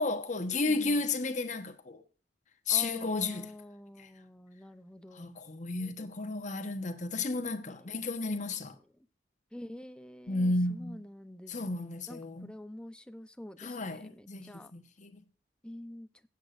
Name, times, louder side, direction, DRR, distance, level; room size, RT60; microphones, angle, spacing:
voice 1, 0.0-2.0 2.7-3.5 4.0-4.1 5.1-8.8 10.3-11.0 11.5-12.5 13.6-15.2, left 3 dB, 45° left, 1.2 m, -33 dB
voice 2, 0.5-1.0 2.7-5.4 7.7-8.0 9.0-9.1 9.5-11.8 12.1-14.7 15.6-16.1, left 1 dB, 5° left, 0.7 m, -47 dB
16.0 x 8.3 x 2.6 m
head